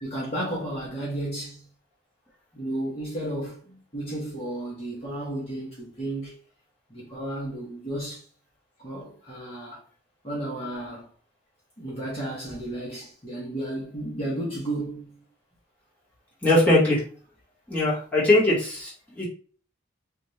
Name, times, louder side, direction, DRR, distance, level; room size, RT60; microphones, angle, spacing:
voice 1, 0.0-1.7 2.5-6.4 6.9-8.2 8.8-9.8 10.2-11.1 11.8-15.2, right 1 dB, 30° left, 1.3 m, -33 dB
voice 2, 16.4-17.0 17.7-18.9 19.2-19.3, left 1 dB, 5° left, 1.7 m, -20 dB
4.2 x 2.8 x 3.2 m
head